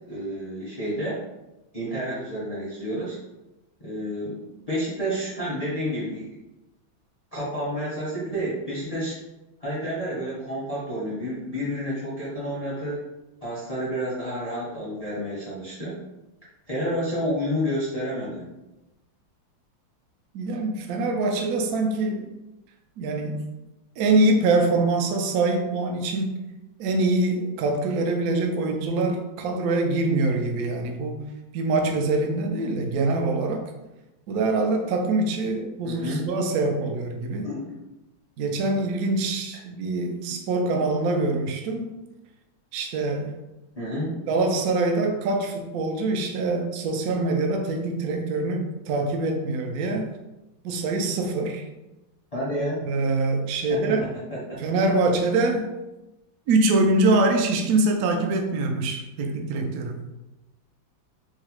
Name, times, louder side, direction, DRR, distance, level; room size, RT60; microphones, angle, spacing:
voice 1, 0.1-1.2 1.7-3.2 3.8-4.4 4.7-6.3 7.3-9.1 9.6-13.0 13.4-15.9 16.7-18.5 35.8-36.3 36.6-36.7 37.4-37.7 43.8-44.2 52.3-52.8 53.7-53.8, equal, 40° left, -8 dB, 0.5 m, -30 dB
voice 2, 20.3-22.3 23.0-23.4 24.0-26.4 26.8-31.2 31.5-33.7 34.3-37.5 38.4-41.9 42.7-43.4 44.3-50.1 50.6-51.7 52.9-54.0 54.6-55.7 56.5-60.0, right 2 dB, 85° right, 3 dB, 0.8 m, -24 dB
4.7 x 2.0 x 3.0 m, 0.98 s
omnidirectional pair, 2.1 m